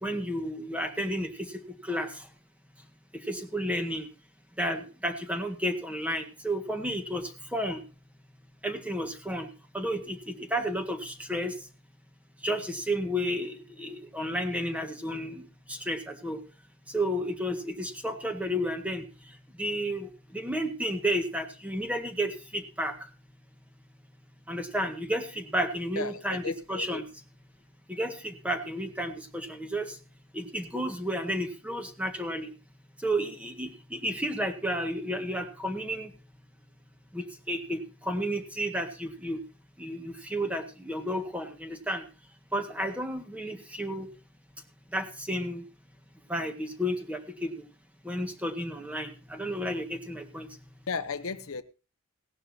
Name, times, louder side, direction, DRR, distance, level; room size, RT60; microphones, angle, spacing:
voice 1, 0.0-1.3 1.8-2.1 3.3-4.1 4.6-7.8 8.6-9.5 9.7-11.5 12.4-15.4 15.7-16.4 16.9-19.0 19.6-20.1 20.3-22.9 24.5-27.0 27.9-29.9 30.3-32.5 33.0-36.1 37.1-39.4 39.8-42.0 42.5-44.1 44.9-45.6 46.3-47.5 48.1-50.5, equal, 5° right, 5 dB, 1.8 m, -32 dB
voice 2, 26.0-27.0 50.9-51.6, left 5 dB, 80° left, 11 dB, 0.9 m, -35 dB
17.5 x 11.5 x 2.8 m, 0.35 s
head